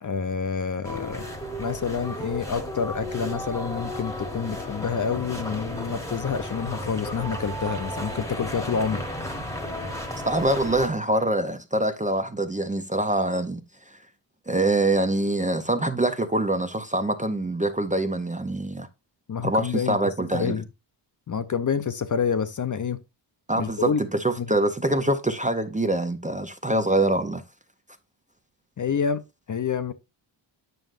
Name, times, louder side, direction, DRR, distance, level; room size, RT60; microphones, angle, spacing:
voice 1, 0.0-1.3 1.6-9.0 19.3-20.6 21.3-23.0 23.5-24.0 24.4-24.6 28.8-29.2 29.5-29.9, left 6 dB, 40° left, 0.5 m, -28 dB
sound 1, 0.8-10.9, equal, 5° left, 1.1 m, -34 dB
voice 2, 10.2-13.6 14.5-18.9 19.4-20.6 23.5-27.4, right 1 dB, 15° right, 0.5 m, -24 dB
9.1 x 6.2 x 2.5 m
wide cardioid pair, 180°, 47 cm